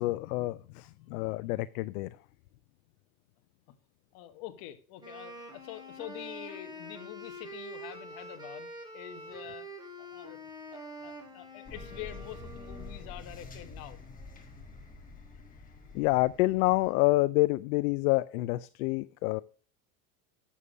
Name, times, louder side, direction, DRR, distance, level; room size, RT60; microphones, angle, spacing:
voice 1, 0.0-2.1 15.9-19.4, left 20 dB, 70° left, 0.5 m, -27 dB
voice 2, 4.1-9.7 10.0-10.4 10.7-14.0, left 13 dB, 50° left, 1.4 m, -45 dB
Wind instrument woodwind instrument, 5.0-13.1, right 1 dB, 10° right, 2.1 m, -45 dB
sound 1, 11.7-16.9, left 3 dB, 15° left, 1.8 m, -47 dB
8.3 x 7.2 x 6.2 m
supercardioid pair, 145°, 46 cm